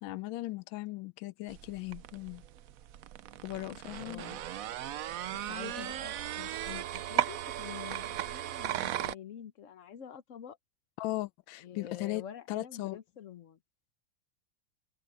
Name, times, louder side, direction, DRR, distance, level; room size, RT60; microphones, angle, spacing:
voice 1, 0.0-2.4 3.4-4.2 11.0-13.0, left 18 dB, 75° left, 1.3 m, -38 dB
sound 1, 1.5-9.1, right 11 dB, 85° right, 0.7 m, -37 dB
voice 2, 4.0-4.4 5.3-10.6 11.6-13.6, left 9 dB, 50° left, 1.0 m, -47 dB
omnidirectional pair, 2.2 m